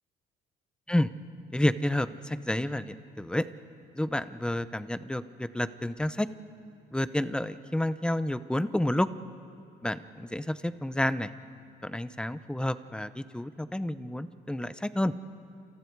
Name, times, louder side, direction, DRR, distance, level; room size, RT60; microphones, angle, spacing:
voice 1, 1.5-3.4 4.0-6.3 6.9-9.1 9.8-11.3 11.8-15.1, left 1 dB, 5° left, 13 dB, 0.8 m, -30 dB
29.5 x 28.0 x 4.7 m, 2.6 s
cardioid pair, 110°, 17 cm